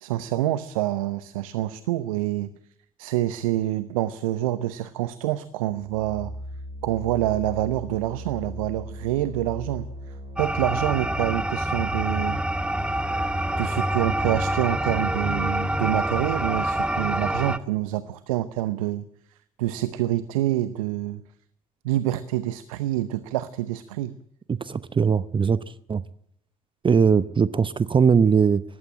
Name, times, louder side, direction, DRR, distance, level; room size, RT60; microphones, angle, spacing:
voice 1, 0.0-2.5 3.0-6.3 6.8-9.9 10.4-12.4 13.6-19.1 19.6-21.2 21.8-24.2, right 14 dB, 75° right, 0.8 m, -27 dB
sound 1, 5.7-17.5, equal, 45° right, 5.3 m, -39 dB
sound 2, 10.4-17.6, right 1 dB, 5° right, 1.1 m, -26 dB
voice 2, 24.5-25.6 25.9-26.0 26.8-28.6, right 6 dB, 30° right, 0.8 m, -20 dB
19.5 x 15.0 x 8.9 m
figure-of-eight pair, 50°, 18 cm